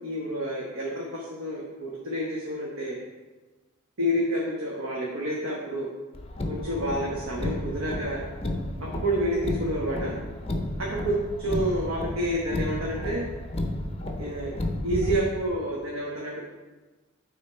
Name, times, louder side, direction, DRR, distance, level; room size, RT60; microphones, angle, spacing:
voice 1, 0.0-2.9 4.0-5.9 6.5-8.2 8.8-10.2 10.8-13.2 14.2-14.6 14.8-16.3, equal, 80° right, -3 dB, 1.1 m, -29 dB
Car, 6.1-15.2, left 1 dB, 30° left, 0.6 m, -32 dB
8.8 x 3.7 x 4.5 m, 1.2 s
head